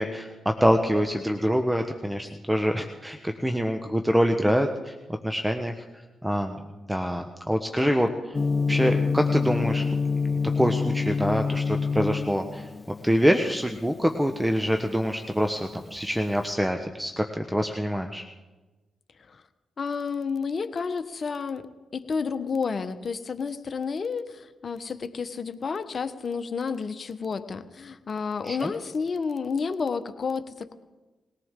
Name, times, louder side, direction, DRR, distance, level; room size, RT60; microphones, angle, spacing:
voice 1, 0.0-4.9 5.2-5.7 6.2-6.6 6.9-8.1 8.7-9.9 10.6-12.7 13.0-18.2 28.5-28.7, equal, 10° right, 5 dB, 1.2 m, -25 dB
voice 2, 7.7-8.2 19.3-19.4 19.8-21.6 21.9-30.7, left 5 dB, 50° left, 9 dB, 1.2 m, -31 dB
Gong, 8.3-16.4, left 4 dB, 35° left, 0.4 m, -28 dB
21.0 x 18.0 x 3.8 m, 1.2 s
supercardioid pair, 45°, 0 cm